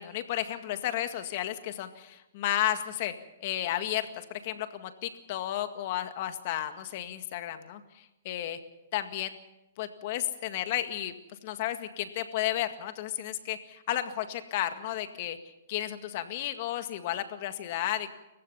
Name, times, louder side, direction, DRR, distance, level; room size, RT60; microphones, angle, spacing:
voice 1, 0.0-3.1 3.4-8.6 8.9-9.4 9.8-11.1 11.4-18.1, left 12 dB, 50° left, 8 dB, 1.9 m, -33 dB
29.5 x 15.5 x 5.7 m, 0.92 s
hypercardioid pair, 145°, 0 cm